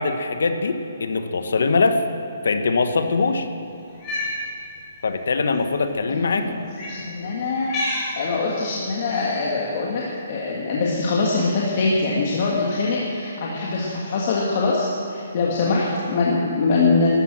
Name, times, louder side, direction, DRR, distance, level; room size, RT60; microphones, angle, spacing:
voice 1, 0.0-2.0 2.4-3.5 5.0-6.5, left 4 dB, 80° left, 8 dB, 1.2 m, -22 dB
Cat, 3.9-4.4 5.4-5.6 6.7-7.0 7.6-8.1 9.1-9.4, left 2 dB, 20° left, 4.5 m, -29 dB
voice 2, 6.1-7.7 8.1-17.1, left 3 dB, 40° left, -4 dB, 1.8 m, -23 dB
13.0 x 11.5 x 7.6 m, 2.8 s
hypercardioid pair, 170°, 0 cm